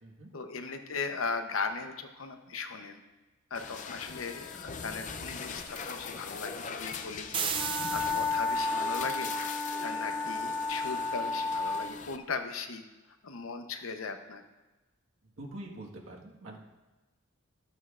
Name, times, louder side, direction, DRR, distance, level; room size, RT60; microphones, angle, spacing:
voice 1, 0.3-3.0 3.5-9.5 9.8-14.4, left 4 dB, 80° left, 6 dB, 0.8 m, -38 dB
sound 1, 3.5-12.2, left 5 dB, 35° left, 0.4 m, -41 dB
sound 2, 7.3-8.9, right 7 dB, 25° right, 0.4 m, -34 dB
Wind instrument woodwind instrument, 7.5-11.9, left 3 dB, 10° left, 1.5 m, -32 dB
voice 2, 15.4-16.6, right 1 dB, 75° right, -1 dB, 1.6 m, -44 dB
13.5 x 8.8 x 2.5 m, 1.1 s
head